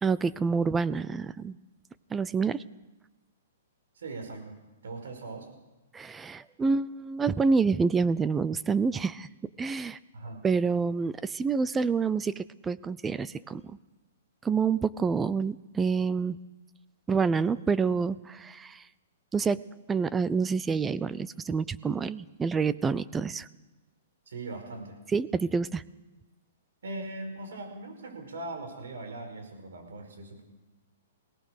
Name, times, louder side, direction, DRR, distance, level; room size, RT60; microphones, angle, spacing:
voice 1, 0.0-1.6 2.1-2.6 5.9-9.3 9.6-10.0 10.4-13.6 14.4-16.4 17.1-18.8 19.3-19.6 19.9-23.5 25.1-25.8, right 5 dB, 10° right, 17 dB, 0.6 m, -27 dB
voice 2, 4.0-4.5 4.8-5.5 10.1-10.4 24.3-25.0 26.8-30.4, right 2 dB, 80° right, 4 dB, 5.1 m, -40 dB
22.5 x 18.0 x 6.5 m, 1.1 s
hypercardioid pair, 145°, 0 cm